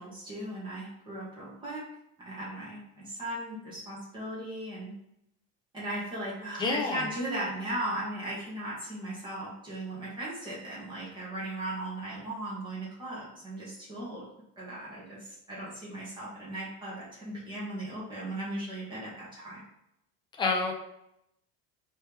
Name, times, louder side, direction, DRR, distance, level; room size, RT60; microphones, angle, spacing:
voice 1, 0.0-1.8 2.2-4.9 5.7-14.2 14.6-19.6, right 1 dB, 15° right, -8 dB, 1.6 m, -37 dB
voice 2, 6.6-7.0 20.4-20.7, left 3 dB, 15° left, 1 dB, 0.4 m, -27 dB
4.5 x 3.1 x 3.4 m, 0.80 s
cardioid pair, 180°, 31 cm